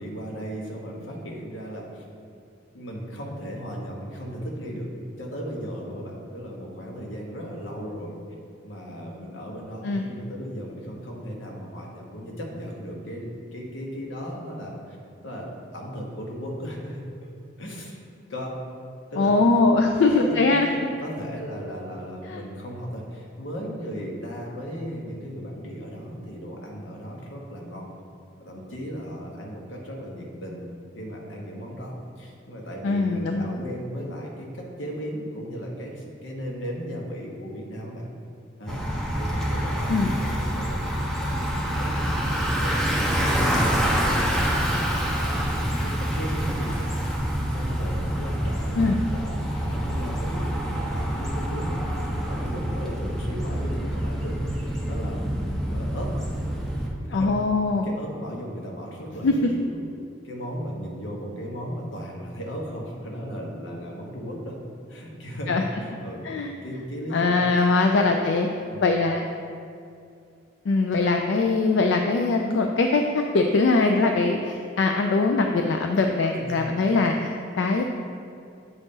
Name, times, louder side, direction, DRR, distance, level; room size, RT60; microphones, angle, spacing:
voice 1, 0.0-2.0 2.7-4.9 5.2-8.2 8.6-15.0 15.2-18.0 18.3-18.6 19.1-19.3 20.2-20.5 21.0-27.9 28.4-30.7 30.9-38.1 38.6-38.8 39.2-40.8 41.1-42.2 42.6-43.6 44.2-46.9 47.5-51.9 52.3-55.2 55.7-56.1 57.0-57.4 57.8-59.8 60.2-64.6 64.9-65.5 65.8-66.3 66.6-67.4 68.7-68.8 76.3-76.8, equal, 90° left, -1 dB, 1.1 m, -36 dB
voice 2, 19.2-20.7 22.3-22.4 32.8-33.6 39.9-40.1 48.8-49.0 57.1-57.9 59.2-59.3 65.5-65.6 66.2-66.5 67.1-68.5 68.8-69.3 70.7-77.8, left 3 dB, 70° left, 3 dB, 0.4 m, -22 dB
Bicycle, 38.7-56.9, equal, ahead, 0.7 m, -26 dB
8.1 x 4.0 x 3.7 m, 2.4 s
head